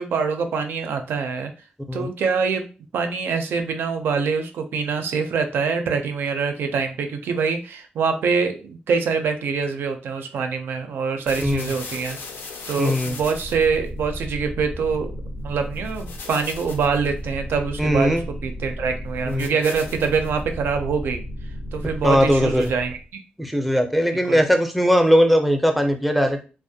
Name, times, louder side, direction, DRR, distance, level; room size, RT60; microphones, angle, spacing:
voice 1, 0.0-1.5 1.9-2.7 2.9-12.2 12.7-15.1 15.4-21.2 21.7-23.2 24.3-24.4, right 5 dB, 90° right, 6 dB, 0.4 m, -24 dB
sound 1, 11.3-23.1, left 1 dB, 90° left, 0.5 m, -34 dB
voice 2, 11.4-11.7 12.8-13.2 17.8-18.2 19.3-19.5 22.0-22.7 23.4-26.5, equal, ahead, 4 dB, 0.4 m, -19 dB
2.4 x 2.1 x 2.6 m, 0.34 s
wide cardioid pair, 105°, 4 cm